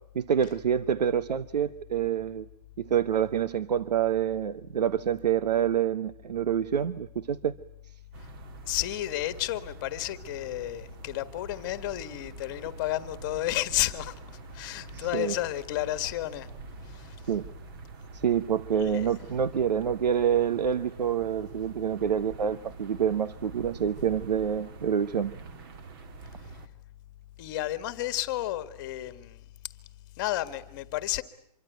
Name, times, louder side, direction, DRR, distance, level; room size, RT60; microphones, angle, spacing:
voice 1, 0.1-2.4 2.8-7.5 14.9-15.3 17.3-17.4 18.1-25.3, right 8 dB, 80° right, 14 dB, 1.1 m, -27 dB
sound 1, 8.1-26.7, right 5 dB, 35° right, 2.3 m, -46 dB
voice 2, 8.7-14.1 14.5-16.5 16.8-17.2 18.8-19.1 27.4-29.4 30.2-31.2, left 15 dB, 30° left, 12 dB, 1.6 m, -32 dB
26.0 x 23.5 x 9.2 m, 0.75 s
hypercardioid pair, 160°, 21 cm